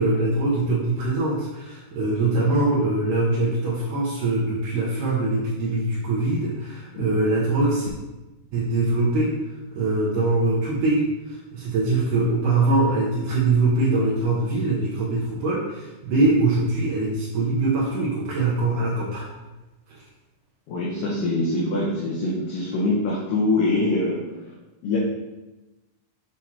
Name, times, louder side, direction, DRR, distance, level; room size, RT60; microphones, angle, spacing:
voice 1, 0.0-7.9 8.5-9.3 9.7-19.3 19.9-20.0, right 2 dB, 75° right, -6 dB, 1.9 m, -23 dB
voice 2, 20.7-24.2 24.8-25.0, left 2 dB, 70° left, -5 dB, 2.1 m, -24 dB
7.7 x 4.8 x 2.8 m, 1.1 s
omnidirectional pair, 4.8 m